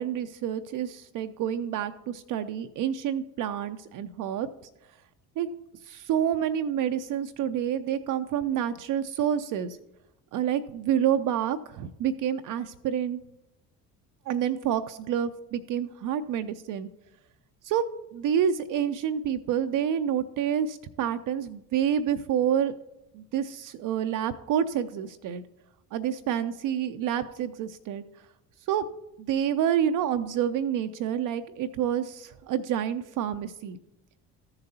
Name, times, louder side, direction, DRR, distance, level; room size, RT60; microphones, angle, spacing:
voice 1, 0.0-4.5 5.4-5.5 5.8-9.8 10.3-13.2 14.3-16.9 17.6-17.8 18.1-22.7 23.1-25.4 25.9-28.0 28.7-28.8 29.2-33.8, right 9 dB, 45° right, 9 dB, 0.5 m, -28 dB
14.5 x 6.8 x 2.8 m, 0.88 s
figure-of-eight pair, 55°, 47 cm